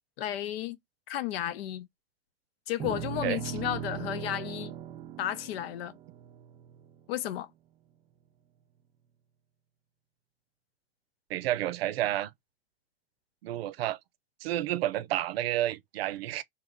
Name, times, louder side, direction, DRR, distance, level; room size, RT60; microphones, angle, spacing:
voice 1, 0.2-0.8 1.1-1.9 2.7-4.7 5.2-5.9 7.1-7.5, left 12 dB, 80° left, 0.7 m, -33 dB
sound 1, 2.8-7.2, right 9 dB, 20° right, 0.4 m, -39 dB
voice 2, 11.3-12.3 13.4-14.0 14.4-16.4, right 13 dB, 85° right, 0.6 m, -30 dB
3.4 x 2.9 x 3.7 m
supercardioid pair, 135°, 29 cm